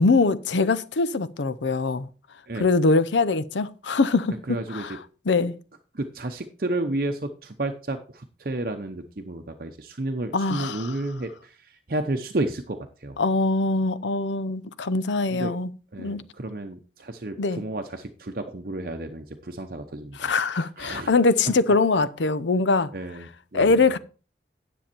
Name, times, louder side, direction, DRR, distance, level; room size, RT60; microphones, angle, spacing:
voice 1, 0.0-2.1 2.6-4.4 4.7-5.0 5.3-5.6 10.3-10.9 13.2-15.7 16.0-16.2 17.4-17.6 20.2-22.9 23.5-24.0, left 3 dB, 85° left, 0.6 m, -22 dB
voice 2, 4.5-5.0 5.9-13.2 15.3-15.5 15.9-21.1 22.9-23.8, right 2 dB, 50° right, 0.8 m, -32 dB
10.0 x 7.1 x 4.4 m
head